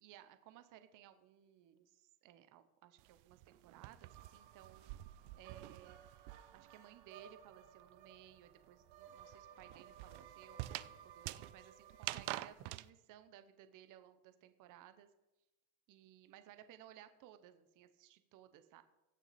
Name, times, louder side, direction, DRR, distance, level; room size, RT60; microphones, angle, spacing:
voice 1, 0.0-5.0 5.4-6.0 6.5-15.1 15.9-18.8, right 11 dB, 40° right, 11 dB, 0.7 m, -60 dB
sound 1, 3.0-6.7 7.0-12.9, right 18 dB, 75° right, 0.5 m, -47 dB
sound 2, 4.1-12.5, right 8 dB, 60° right, 1.1 m, -59 dB
16.0 x 6.1 x 4.1 m, 0.99 s
cardioid pair, 170°, 50 cm